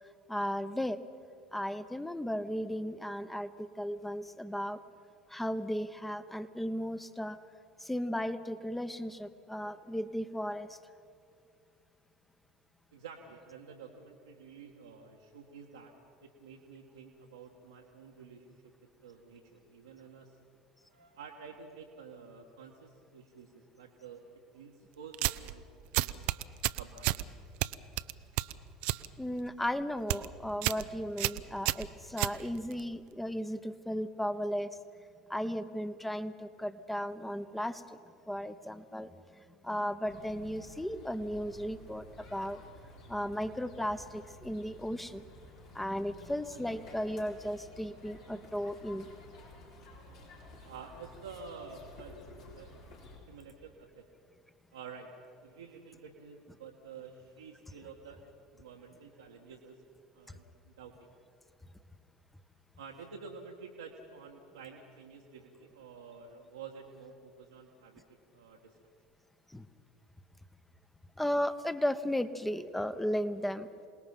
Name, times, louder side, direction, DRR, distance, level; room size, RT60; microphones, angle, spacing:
voice 1, 0.3-1.0 1.5-4.8 5.3-7.4 7.8-10.8 29.2-34.7 35.3-38.0 38.3-39.1 39.6-42.6 43.1-45.2 45.7-49.1 69.5-69.7 71.2-73.7, equal, 5° left, 12 dB, 1.1 m, -35 dB
voice 2, 12.9-15.9 16.2-18.6 19.0-20.4 20.8-25.7 25.9-26.1 26.8-27.2 50.6-52.2 52.5-52.9 53.3-54.0 54.7-55.1 55.4-58.2 58.5-59.8 60.1-60.9 62.8-68.0 68.3-68.8, right 5 dB, 80° right, -1 dB, 1.5 m, -50 dB
sound 1, 25.1-25.5 25.9-27.2 27.6-29.1 29.4-29.7 30.0-30.3 30.6-30.9 31.2-32.8, right 18 dB, 60° right, 0.6 m, -31 dB
sound 2, 40.0-53.2, left 2 dB, 75° left, 5.2 m, -53 dB
27.0 x 19.5 x 5.8 m, 2.5 s
figure-of-eight pair, 70°, 2 cm